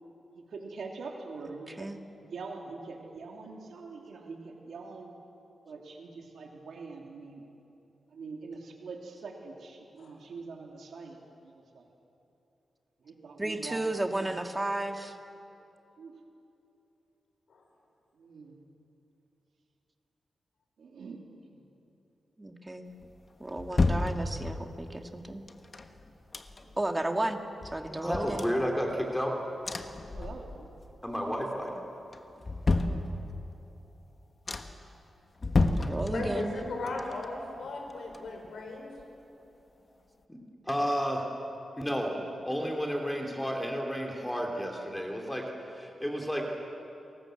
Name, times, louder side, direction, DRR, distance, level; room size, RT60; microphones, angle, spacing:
voice 1, 0.4-1.9 2.2-5.1 5.7-7.4 8.1-11.9 13.0-13.9 14.2-14.3 16.0-16.1 18.2-18.6 20.8-21.2 21.4-21.6 26.6-26.7 30.1-30.7 32.7-33.0 36.0-36.3 42.2-42.3, right 4 dB, 75° right, 1 dB, 3.0 m, -44 dB
voice 2, 1.7-2.0 13.4-15.2 22.4-23.0 23.4-25.4 26.8-27.4 27.7-28.5 35.8-36.5, right 1 dB, 15° right, 4 dB, 1.9 m, -33 dB
sound 1, 23.0-24.8 25.5-26.9 27.2-27.3 27.6-29.2 29.6-30.8 31.1-31.6 32.1-33.6 34.0-34.1 34.5-34.9 35.4-36.6 36.9-38.7 39.0-39.1, left 3 dB, 35° left, 1.5 m, -32 dB
voice 3, 28.0-29.3 31.0-31.7 40.3-40.4 40.6-41.3 41.8-42.2 42.5-45.5 45.7-46.4, equal, 5° left, 0 dB, 3.1 m, -31 dB
voice 4, 36.1-38.9, left 2 dB, 85° left, 1 dB, 4.8 m, -37 dB
29.5 x 21.0 x 7.9 m, 2.9 s
wide cardioid pair, 120°, 0 cm